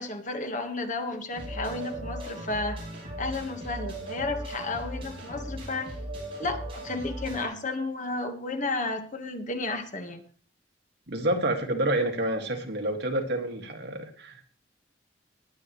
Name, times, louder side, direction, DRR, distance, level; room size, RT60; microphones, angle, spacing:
voice 1, 0.0-2.8 3.2-5.9 6.4-10.2, left 3 dB, 45° left, 5 dB, 1.6 m, -32 dB
sound 1, 1.3-7.4, right 1 dB, 30° right, 7.0 m, -37 dB
voice 2, 11.1-14.4, right 1 dB, 65° right, 2 dB, 2.2 m, -28 dB
20.5 x 8.4 x 3.2 m, 0.44 s
head